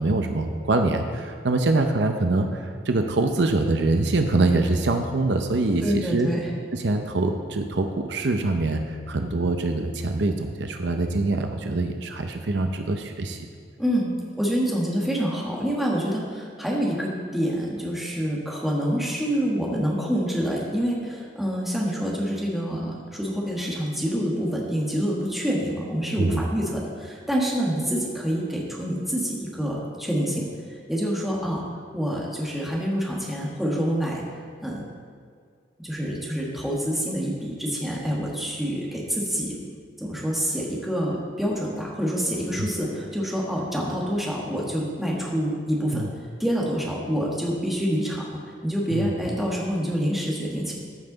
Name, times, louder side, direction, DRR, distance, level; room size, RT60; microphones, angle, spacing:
voice 1, 0.0-6.3 6.7-13.5 26.2-26.4 42.6-42.7 45.9-46.1 48.9-49.1, right 2 dB, 70° right, 5 dB, 0.7 m, -24 dB
voice 2, 5.8-6.5 13.8-31.6 31.9-34.2 34.6-34.9 35.8-39.5 40.0-46.0 46.4-48.2 48.6-50.7, equal, ahead, -4 dB, 1.5 m, -27 dB
14.0 x 5.8 x 3.9 m, 2.2 s
head